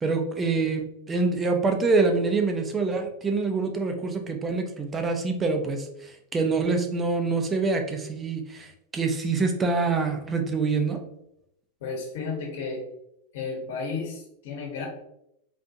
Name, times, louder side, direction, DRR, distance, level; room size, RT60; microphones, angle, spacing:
voice 1, 0.0-11.0, right 4 dB, 15° right, 4 dB, 0.4 m, -26 dB
voice 2, 11.8-12.8 13.3-14.9, left 4 dB, 65° left, 0 dB, 1.0 m, -33 dB
3.7 x 2.4 x 2.6 m, 0.79 s
supercardioid pair, 155°, 0 cm